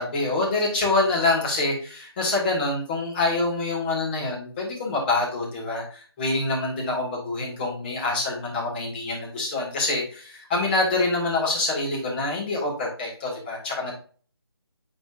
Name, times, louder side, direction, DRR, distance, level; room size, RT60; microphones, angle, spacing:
voice 1, 0.0-13.9, left 2 dB, 25° left, -3 dB, 2.2 m, -26 dB
9.3 x 4.3 x 2.6 m, 0.42 s
figure-of-eight pair, 160°, 14 cm